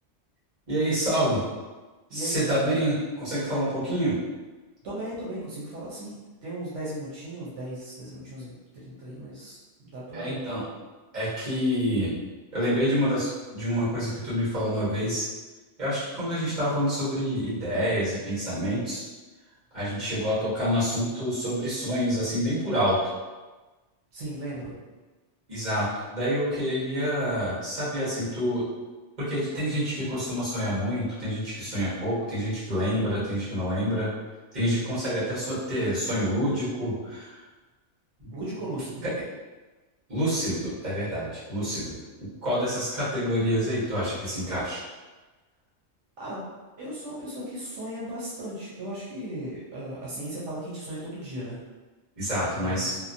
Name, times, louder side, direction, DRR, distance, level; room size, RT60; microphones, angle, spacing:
voice 1, 0.7-1.4 2.1-4.1 10.1-10.6 11.1-12.2 12.5-15.2 15.8-19.0 19.7-23.0 25.5-28.7 29.2-34.1 34.5-37.4 38.2-38.3 40.1-44.8 52.2-52.9, equal, 40° right, -10 dB, 1.3 m, -27 dB
voice 2, 2.1-2.5 4.8-10.4 24.1-24.8 38.3-39.0 46.2-46.4 46.8-51.6 52.4-52.9, right 1 dB, 80° right, -8 dB, 1.0 m, -36 dB
2.9 x 2.2 x 2.5 m, 1.2 s
omnidirectional pair, 1.2 m